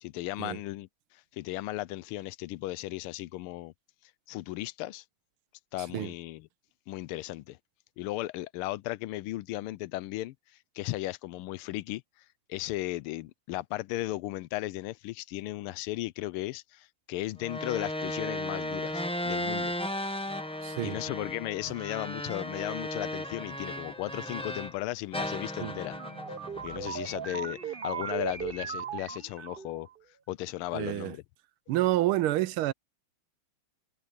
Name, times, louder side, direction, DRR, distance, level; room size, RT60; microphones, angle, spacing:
voice 1, 0.0-3.7 4.3-5.0 5.7-6.5 6.9-7.6 8.0-10.3 10.7-12.0 12.5-19.7 20.2-20.3 20.8-26.0 26.6-29.9 30.3-31.2, left 17 dB, 85° left, 1.5 m, -36 dB
sound 1, 17.4-24.8 25.1-27.5, left 1 dB, 5° left, 0.8 m, -35 dB
voice 2, 20.6-21.0 25.6-25.7 30.7-31.1 31.7-32.7, right 15 dB, 80° right, 1.5 m, -28 dB
sound 2, 25.7-29.9, right 7 dB, 55° right, 0.6 m, -37 dB
omnidirectional pair, 2.4 m